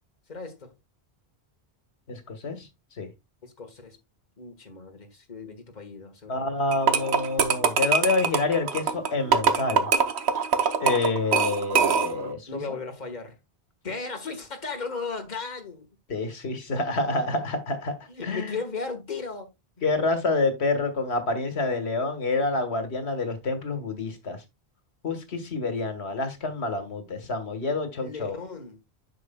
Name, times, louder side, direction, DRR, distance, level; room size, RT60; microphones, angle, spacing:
voice 1, 0.3-0.7 3.4-4.0 4.4-6.5 12.5-13.3 13.8-15.8 18.1-19.5 27.9-28.8, left 4 dB, 45° left, 1.7 m, -36 dB
voice 2, 2.1-2.7 3.0-3.1 6.3-9.9 10.8-12.6 16.1-17.9 18.2-18.6 19.8-24.4 25.0-28.4, left 3 dB, 85° left, 1.7 m, -27 dB
sound 1, 6.7-12.3, right 6 dB, 85° right, 1.1 m, -23 dB
9.4 x 6.2 x 2.2 m
omnidirectional pair, 1.1 m